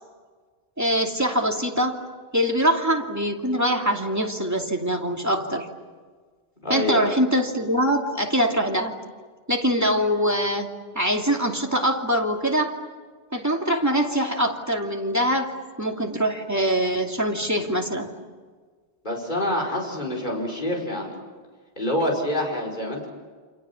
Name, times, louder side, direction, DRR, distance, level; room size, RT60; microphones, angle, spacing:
voice 1, 0.8-1.9 2.3-5.7 6.7-9.0 9.5-12.7 13.3-15.5 15.8-18.1, equal, 15° right, 1 dB, 2.8 m, -23 dB
voice 2, 6.6-7.0 19.0-21.2 21.8-23.1, left 1 dB, 50° left, -1 dB, 5.4 m, -26 dB
29.0 x 27.0 x 7.2 m, 1.5 s
omnidirectional pair, 1.0 m